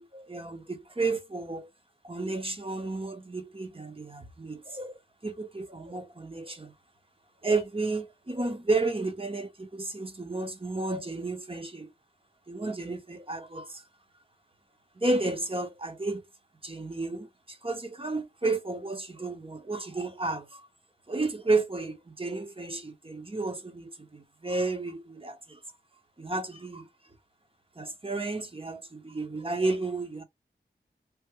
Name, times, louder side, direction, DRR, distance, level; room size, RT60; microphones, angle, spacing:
voice 1, 0.0-1.7 2.0-6.7 7.4-11.9 12.5-13.8 15.0-16.3 16.6-20.6 21.1-25.6 26.2-26.9 27.8-30.2, right 3 dB, 30° right, 0.8 m, -32 dB
3.5 x 2.2 x 3.0 m
wide cardioid pair, 45°, 20 cm